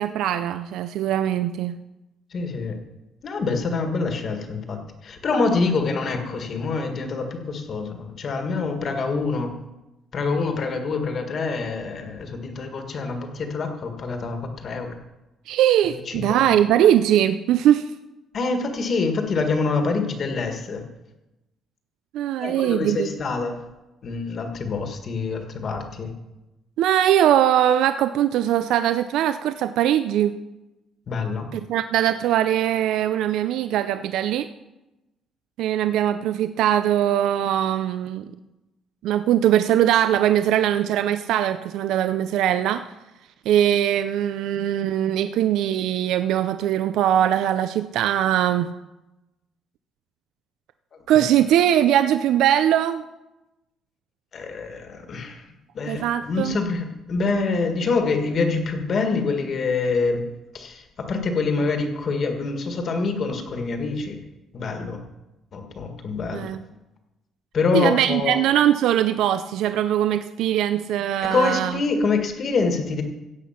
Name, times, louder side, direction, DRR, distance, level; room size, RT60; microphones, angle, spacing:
voice 1, 0.0-1.8 15.5-17.9 22.1-23.1 26.8-30.3 31.5-34.5 35.6-38.3 39.0-42.8 43.5-48.7 51.1-53.0 55.9-56.6 66.3-66.6 67.7-71.8, right 11 dB, 75° right, 11 dB, 0.5 m, -21 dB
voice 2, 2.3-2.8 3.2-9.5 10.1-14.9 15.9-16.5 18.3-20.8 22.4-23.6 24.0-26.1 31.1-31.5 54.3-55.4 55.7-60.3 60.5-64.2 64.5-65.0 65.5-66.5 67.5-68.4 71.2-73.0, left 4 dB, 35° left, 5 dB, 1.5 m, -26 dB
15.5 x 8.3 x 5.8 m, 1.0 s
cardioid pair, 170°, 0 cm